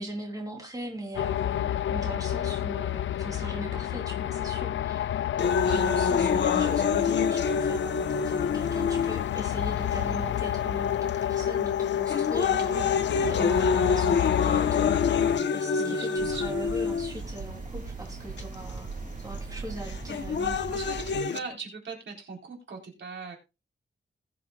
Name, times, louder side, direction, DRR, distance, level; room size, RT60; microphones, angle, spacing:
voice 1, 0.0-5.2 5.7-12.9 13.3-14.9 15.5-18.9 19.2-20.8, right 1 dB, 20° right, 0 dB, 3.5 m, -40 dB
sound 1, 1.1-15.4, left 11 dB, 85° left, 0.4 m, -29 dB
sound 2, 5.4-9.4 10.1-10.2 11.1-11.4 11.9-17.4 18.4-18.5 19.9-21.4, left 5 dB, 70° left, 1.0 m, -27 dB
voice 2, 5.5-5.9 12.7-12.9 15.8-16.6 20.7-23.4, right 4 dB, 75° right, 0 dB, 4.0 m, -40 dB
sound 3, 16.2-21.2, right 4 dB, 45° right, 2.4 m, -39 dB
20.5 x 7.5 x 2.4 m, 0.27 s
wide cardioid pair, 150°, 19 cm